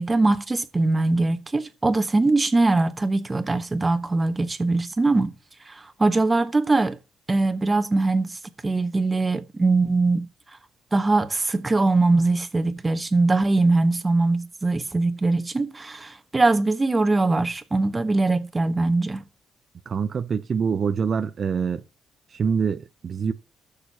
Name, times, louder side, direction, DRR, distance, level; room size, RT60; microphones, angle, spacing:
voice 1, 0.0-5.3 5.7-7.0 7.3-10.3 10.9-19.2, right 3 dB, 25° right, 1.3 m, -22 dB
voice 2, 19.9-21.8 22.3-23.3, right 6 dB, 50° right, 0.6 m, -25 dB
15.0 x 6.7 x 3.0 m
supercardioid pair, 65°, 0 cm